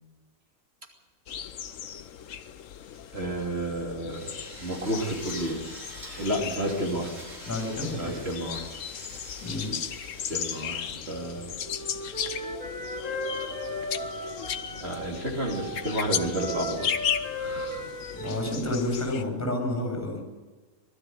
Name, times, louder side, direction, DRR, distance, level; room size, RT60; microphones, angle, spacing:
sound 1, 1.3-19.2, left 9 dB, 65° left, 1.1 m, -36 dB
voice 1, 3.1-5.7 6.2-7.2 8.0-8.9 10.3-11.6 14.8-17.8, right 1 dB, 45° right, -1 dB, 3.4 m, -31 dB
Drill, 4.1-11.9, right 1 dB, 60° right, 5.5 m, -46 dB
voice 2, 7.5-8.1 9.4-9.8 18.1-20.2, left 1 dB, 10° left, 1 dB, 8.0 m, -30 dB
Wind instrument woodwind instrument, 11.6-15.1 15.4-18.9, equal, 85° right, 3.9 m, -36 dB
21.0 x 13.0 x 9.4 m, 1.3 s
omnidirectional pair, 1.5 m